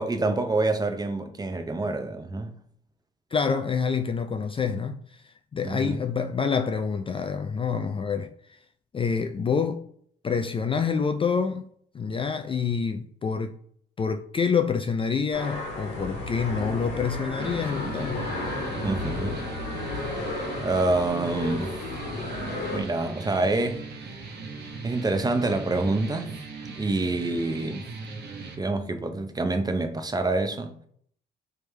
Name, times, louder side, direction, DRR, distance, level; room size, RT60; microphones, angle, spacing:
voice 1, 0.0-2.5 5.6-6.0 18.8-19.5 20.6-21.7 22.7-23.8 24.8-26.4 26.8-27.8 28.6-30.8, right 2 dB, 20° right, 0.6 m, -27 dB
voice 2, 3.3-8.3 8.9-9.8 10.2-11.7 11.9-13.6 14.0-18.3, left 6 dB, 25° left, 0.3 m, -27 dB
sound 1, 15.3-22.8, left 2 dB, 65° left, 1.6 m, -33 dB
sound 2, 17.4-28.5, right 4 dB, 60° right, 1.1 m, -39 dB
3.4 x 3.3 x 3.2 m
supercardioid pair, 75°, 20 cm